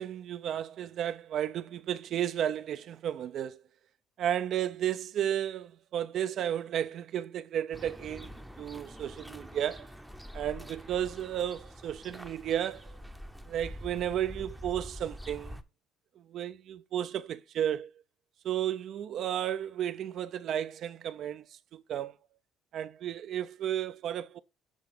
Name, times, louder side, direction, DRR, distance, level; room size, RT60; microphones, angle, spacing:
voice 1, 0.0-3.6 4.2-9.9 10.3-13.0 13.5-15.6 16.2-17.9 18.4-22.1 22.7-24.4, right 10 dB, 60° right, 0.5 m, -33 dB
sound 1, 7.7-15.6, equal, ahead, 0.7 m, -46 dB
7.7 x 3.7 x 5.1 m
cardioid pair, 115°, 0 cm